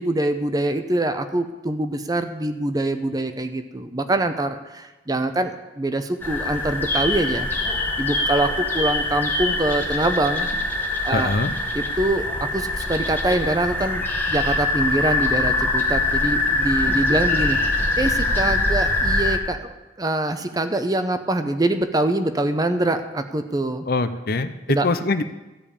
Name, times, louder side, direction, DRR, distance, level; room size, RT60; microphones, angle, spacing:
voice 1, 0.0-7.5 8.0-10.5 11.0-11.3 11.7-17.6 18.0-19.7 20.0-23.8 24.7-24.9, right 1 dB, 20° right, 8 dB, 0.7 m, -24 dB
sound 1, 6.2-19.4, left 2 dB, 10° left, 1.2 m, -23 dB
voice 2, 11.1-11.5 23.9-25.2, left 3 dB, 55° left, 11 dB, 0.6 m, -23 dB
14.0 x 5.2 x 8.7 m, 1.0 s
head